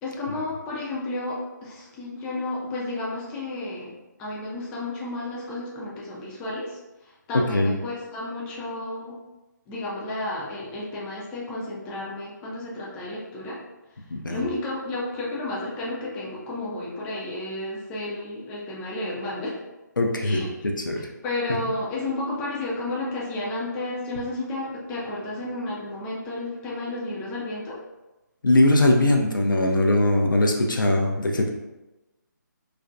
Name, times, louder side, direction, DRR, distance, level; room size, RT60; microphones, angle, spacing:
voice 1, 0.0-9.2 9.7-13.6 14.3-19.6 20.2-20.5 21.2-27.8, left 2 dB, 10° left, -5 dB, 0.3 m, -32 dB
voice 2, 14.1-14.4 20.0-21.1 28.4-31.5, left 1 dB, 85° left, 1 dB, 0.5 m, -21 dB
2.4 x 2.1 x 2.5 m, 1.0 s
figure-of-eight pair, 145°, 10 cm